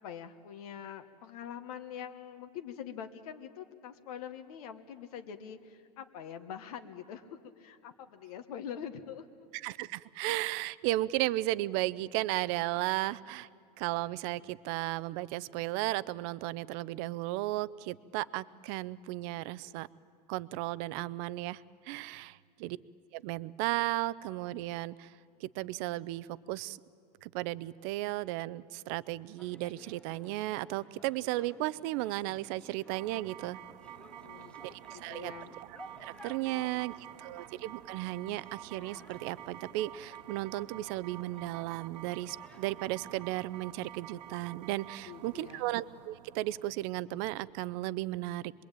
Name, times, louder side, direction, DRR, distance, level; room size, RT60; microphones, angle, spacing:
voice 1, 0.0-9.5 34.2-34.6 34.9-35.5 36.5-36.8 45.1-45.7, left 8 dB, 65° left, 7 dB, 1.4 m, -44 dB
voice 2, 9.5-13.5 13.8-19.9 20.3-22.8 23.1-25.1 25.4-26.8 27.2-33.6 34.6-35.3 36.0-48.5, right 17 dB, 40° right, 18 dB, 0.5 m, -35 dB
sound 1, 29.4-43.5, left 2 dB, 5° left, 0.6 m, -57 dB
sound 2, 32.9-47.8, right 12 dB, 85° right, 0.5 m, -50 dB
26.0 x 21.5 x 9.0 m, 2.3 s
supercardioid pair, 155°, 20 cm